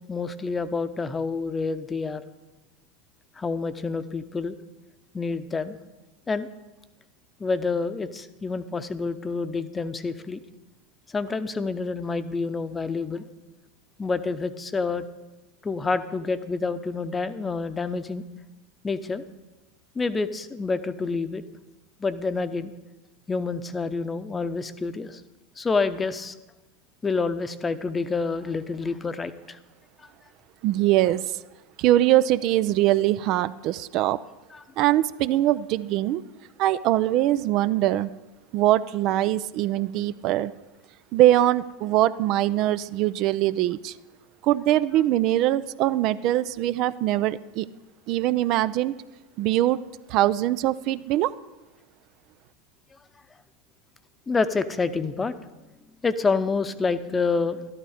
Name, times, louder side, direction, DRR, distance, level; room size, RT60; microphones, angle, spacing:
voice 1, 0.1-2.2 3.4-4.6 5.1-5.8 6.3-6.5 7.4-10.4 11.1-13.2 14.0-15.0 15.6-18.2 18.8-19.2 19.9-21.4 22.0-22.7 23.3-25.2 25.6-26.3 27.0-29.6 30.0-30.1 34.5-34.6 54.3-55.4 56.0-57.6, left 4 dB, 20° left, 12 dB, 0.8 m, -28 dB
voice 2, 30.6-31.2 31.8-34.2 34.8-36.2 36.6-38.1 38.5-40.5 41.1-43.9 44.4-47.7 48.1-48.9 49.4-49.8 50.1-51.3, right 14 dB, 55° right, 15 dB, 0.4 m, -22 dB
12.5 x 12.0 x 5.0 m, 1.1 s
hypercardioid pair, 85°, 0 cm